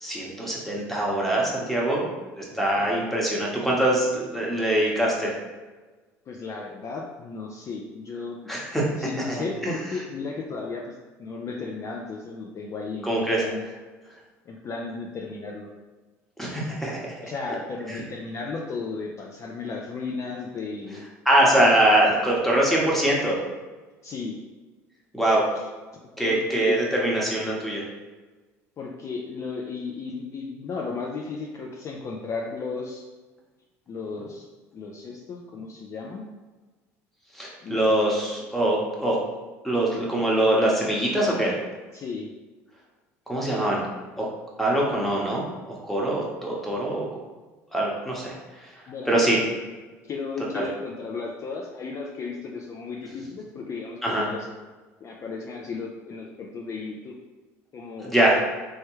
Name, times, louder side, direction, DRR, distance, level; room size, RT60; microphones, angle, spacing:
voice 1, 0.0-2.1 2.4-5.3 8.5-8.8 9.3-9.7 13.0-13.4 16.4-17.1 17.9-18.0 21.2-23.4 25.1-25.4 26.2-27.8 37.3-39.2 39.6-41.6 43.3-43.8 44.2-44.3 44.6-47.1 47.7-48.4 49.1-49.4 50.5-50.6 54.0-54.3 58.0-58.4, right 1 dB, 5° left, -4 dB, 1.0 m, -23 dB
voice 2, 2.5-2.9 6.3-8.5 9.0-13.6 14.5-15.7 17.2-21.0 24.0-24.4 26.2-26.8 28.8-33.0 33.9-34.5 34.7-36.2 37.6-37.8 41.9-42.3 48.9-49.1 50.0-54.5 55.0-57.1 57.7-58.4, left 4 dB, 40° left, 0 dB, 0.4 m, -34 dB
3.3 x 2.2 x 3.1 m, 1.3 s
hypercardioid pair, 80°, 8 cm